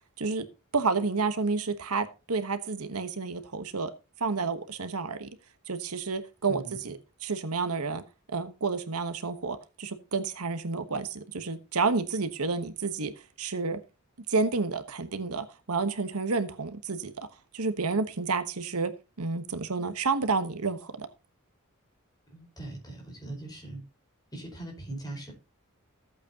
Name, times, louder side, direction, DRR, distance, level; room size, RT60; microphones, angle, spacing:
voice 1, 0.7-3.9 4.2-5.3 5.7-8.0 8.3-13.1 13.4-13.8 14.3-17.1 17.5-18.9 19.2-21.1, right 4 dB, 80° right, 1.2 m, -30 dB
voice 2, 6.5-6.9 22.3-23.8 24.3-25.3, right 2 dB, 20° left, 4.8 m, -40 dB
15.0 x 8.3 x 2.9 m
head